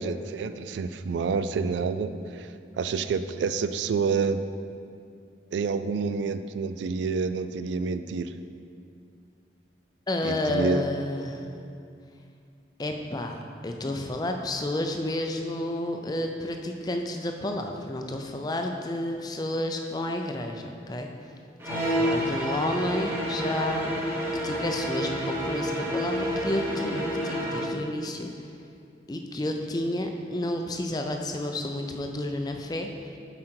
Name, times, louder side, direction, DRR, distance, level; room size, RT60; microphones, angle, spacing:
voice 1, 0.0-2.5 2.8-4.4 5.5-8.3 10.2-10.8, right 5 dB, 75° right, 11 dB, 0.3 m, -28 dB
voice 2, 10.1-11.4 12.8-21.1 21.7-23.9 24.4-28.3 29.1-32.9, left 1 dB, 20° left, 4 dB, 0.4 m, -31 dB
sound 1, 21.6-27.7, equal, 10° right, 1.0 m, -29 dB
7.4 x 5.0 x 4.5 m, 2.4 s
head